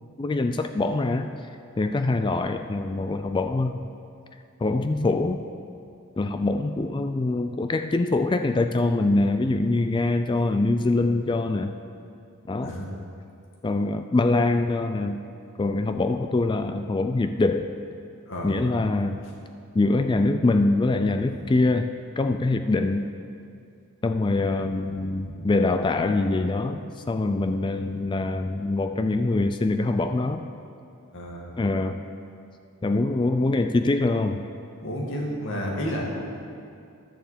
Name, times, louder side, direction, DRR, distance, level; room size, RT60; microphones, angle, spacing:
voice 1, 0.2-1.3 1.8-3.8 4.6-5.4 6.2-11.7 12.5-12.7 13.6-15.2 15.6-17.7 18.4-19.2 19.7-21.9 22.2-23.1 24.0-26.8 27.1-30.4 31.6-32.0 32.8-34.4, left 2 dB, 20° left, 8 dB, 0.3 m, -24 dB
voice 2, 18.3-18.6 21.2-21.3 25.2-25.4 31.1-31.5 34.8-36.0, equal, 55° left, -2 dB, 2.0 m, -31 dB
11.0 x 6.9 x 7.4 m, 2.5 s
head